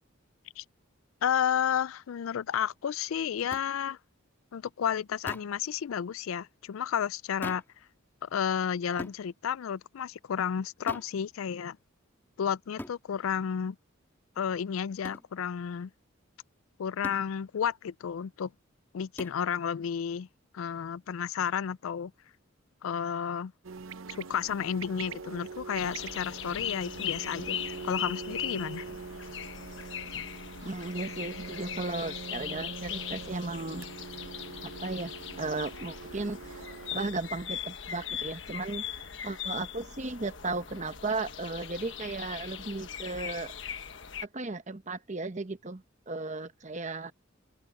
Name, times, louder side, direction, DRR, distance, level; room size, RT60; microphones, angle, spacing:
voice 1, 1.2-4.0 4.5-7.6 8.2-11.8 12.4-13.8 14.4-15.9 16.8-18.5 18.9-20.3 20.5-22.1 22.8-23.5 24.1-28.9, left 8 dB, 90° left, 0.4 m, -32 dB
sound 1, 3.5-3.7 5.3-5.6 7.4-7.8 9.0-9.2 10.9-11.2 12.8-13.0 15.0-15.3 17.0-17.3 19.2-19.4, left 1 dB, 10° left, 1.9 m, -41 dB
sound 2, 23.6-37.1, right 4 dB, 80° right, 0.8 m, -43 dB
sound 3, 25.7-44.3, left 9 dB, 65° left, 1.3 m, -40 dB
voice 2, 30.6-33.9 34.8-36.7 36.9-43.5 44.3-47.1, right 3 dB, 35° right, 1.1 m, -35 dB
open air
head